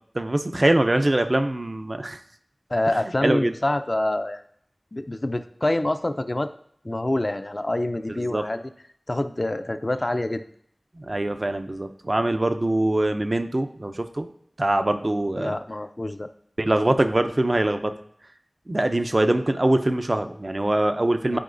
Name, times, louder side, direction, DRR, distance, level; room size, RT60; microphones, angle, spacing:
voice 1, 0.1-2.2 3.2-3.5 8.1-8.4 11.0-14.3 14.6-15.6 16.6-17.9 18.7-21.4, right 1 dB, 45° right, 8 dB, 0.6 m, -23 dB
voice 2, 2.7-4.4 4.9-6.5 6.8-8.6 9.1-10.4 15.3-16.3 21.3-21.4, left 1 dB, 45° left, 10 dB, 0.5 m, -26 dB
11.5 x 4.6 x 2.6 m, 0.68 s
wide cardioid pair, 45°, 0 cm